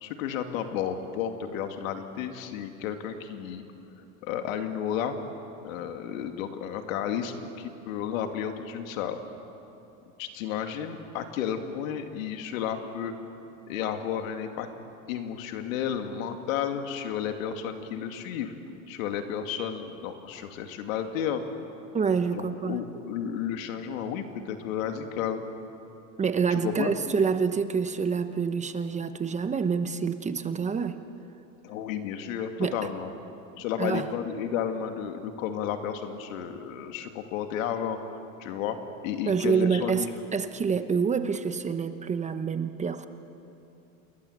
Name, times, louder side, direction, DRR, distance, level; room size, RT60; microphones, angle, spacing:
voice 1, 0.0-3.6 4.0-5.2 5.6-9.2 10.2-13.1 13.7-14.7 15.1-18.5 18.9-21.4 22.3-25.4 26.5-26.9 31.6-33.1 33.6-38.0 38.4-40.1, left 8 dB, 80° left, 6 dB, 2.5 m, -32 dB
voice 2, 21.9-22.8 26.2-31.0 32.6-32.8 33.8-34.1 39.3-40.1 40.3-43.1, right 6 dB, 15° right, 10 dB, 0.9 m, -27 dB
28.0 x 21.5 x 8.1 m, 2.9 s
supercardioid pair, 135°, 40 cm